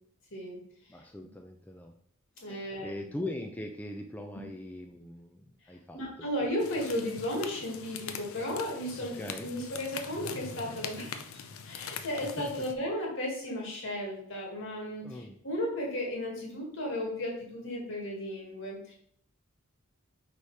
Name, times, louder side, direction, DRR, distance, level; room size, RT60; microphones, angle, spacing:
voice 1, 0.9-1.9 2.4-6.0 9.0-9.5 12.2-12.7 15.0-15.4, left 1 dB, 10° left, 3 dB, 0.4 m, -41 dB
voice 2, 2.4-3.0 5.9-11.3 11.7-18.9, left 1 dB, 65° left, -1 dB, 2.0 m, -35 dB
sound 1, 6.6-12.7, left 6 dB, 80° left, 0.6 m, -42 dB
4.9 x 4.2 x 4.7 m, 0.66 s
head